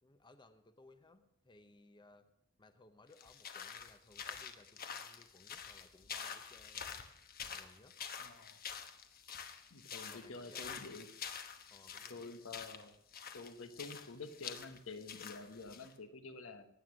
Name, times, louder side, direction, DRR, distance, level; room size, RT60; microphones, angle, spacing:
voice 1, 0.0-2.3 2.6-7.1 7.5-7.9 10.1-10.8 11.7-12.3, left 2 dB, 20° left, 9 dB, 0.7 m, -62 dB
sound 1, 3.1-15.9, left 7 dB, 45° left, 1.1 m, -47 dB
voice 2, 8.2-8.6 9.7-11.1 12.1-12.9 13.3-16.7, left 3 dB, 75° left, 9 dB, 1.2 m, -49 dB
16.5 x 9.6 x 6.3 m, 0.80 s
head